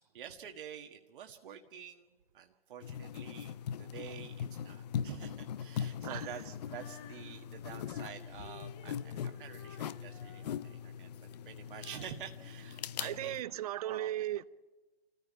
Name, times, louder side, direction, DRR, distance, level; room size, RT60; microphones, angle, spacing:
voice 1, 0.1-11.1 11.4-13.4 13.8-14.3, right 9 dB, 55° right, 1.6 m, -48 dB
sound 1, 2.8-13.4, left 8 dB, 40° left, 0.7 m, -41 dB
Female singing, 6.6-13.6, left 8 dB, 25° left, 1.1 m, -56 dB
voice 2, 13.0-14.4, right 13 dB, 35° right, 0.7 m, -36 dB
27.0 x 14.5 x 9.3 m
hypercardioid pair, 140°, 31 cm